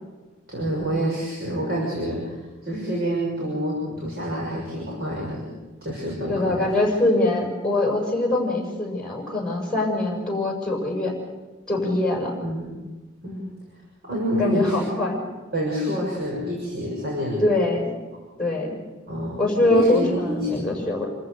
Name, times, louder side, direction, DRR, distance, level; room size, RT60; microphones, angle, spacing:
voice 1, 0.5-5.5 5.8-6.7 12.4-12.8 13.2-13.5 14.0-14.8 15.5-17.4 19.1-20.9, equal, 55° right, -3 dB, 6.6 m, -28 dB
voice 2, 6.3-11.2 11.7-12.4 14.4-15.2 17.4-17.9 18.4-18.8 19.4-21.1, left 2 dB, 5° left, -2 dB, 7.0 m, -23 dB
28.5 x 14.5 x 6.8 m, 1.2 s
head